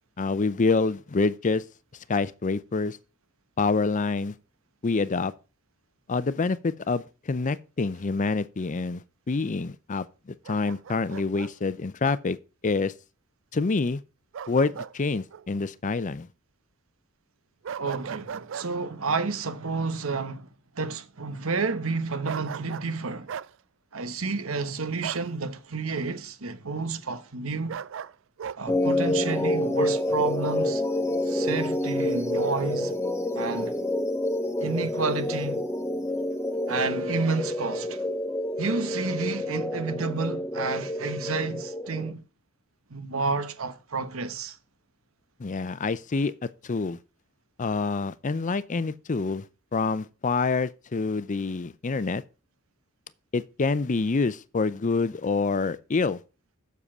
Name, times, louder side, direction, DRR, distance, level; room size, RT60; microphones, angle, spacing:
voice 1, 0.2-1.6 2.1-3.0 3.6-4.3 4.8-5.3 6.1-12.4 12.6-12.9 13.5-14.0 14.5-16.3 45.4-46.3 46.6-47.0 47.6-49.4 49.7-52.2 53.3-56.2, left 4 dB, 35° left, 0.5 m, -27 dB
Bark, 10.5-11.5 14.3-15.0 15.3-15.5 17.6-18.7 22.3-22.9 23.3-23.5 25.0-25.3 27.7-28.6, right 7 dB, 65° right, 0.4 m, -37 dB
voice 2, 17.8-20.5 20.7-23.3 23.9-27.8 28.6-30.8 31.2-32.9 33.3-33.8 34.6-35.6 36.7-38.1 38.6-42.2 42.9-44.6, right 4 dB, 85° right, 1.2 m, -30 dB
sound 1, 28.7-42.1, left 1 dB, 15° left, 0.9 m, -28 dB
7.5 x 6.8 x 6.1 m
head